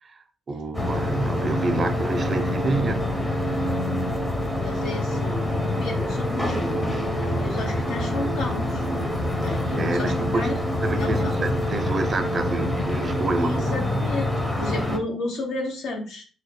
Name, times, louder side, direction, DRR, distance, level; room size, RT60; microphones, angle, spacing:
voice 1, 0.0-3.2 9.8-10.5 10.8-14.1 14.7-14.8, right 3 dB, 40° right, 0.5 m, -28 dB
sound 1, 0.7-15.0, left 1 dB, 20° left, 0.7 m, -26 dB
voice 2, 4.5-6.9 7.3-8.9 9.4-10.6 11.0-11.4 13.4-16.2, left 2 dB, 80° left, 1.0 m, -32 dB
2.8 x 2.2 x 4.1 m
cardioid pair, 90°, 0 cm